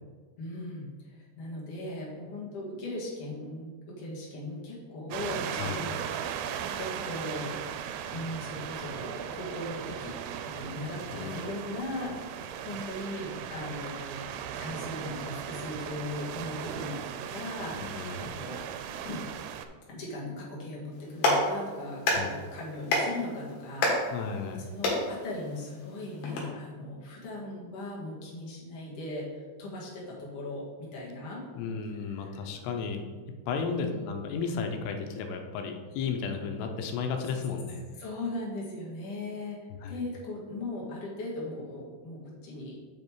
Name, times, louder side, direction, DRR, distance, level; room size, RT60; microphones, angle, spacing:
voice 1, 0.4-7.6 8.1-14.3 14.6-18.7 19.0-19.3 19.9-24.3 24.6-29.3 29.6-31.4 32.0-32.5 33.7-34.1 38.0-39.6 39.9-42.8, left 1 dB, 45° left, -4 dB, 2.2 m, -39 dB
sound 1, 5.1-19.7, right 9 dB, 90° right, 2.7 m, -37 dB
voice 2, 17.8-18.3 22.1-22.3 24.1-24.7 31.6-33.0 33.5-37.9 39.7-40.0, left 5 dB, 90° left, 4 dB, 2.9 m, -34 dB
Clapping, 20.9-26.4, left 2 dB, 70° left, 3.4 m, -31 dB
7.3 x 5.4 x 4.6 m, 1.5 s
omnidirectional pair, 4.7 m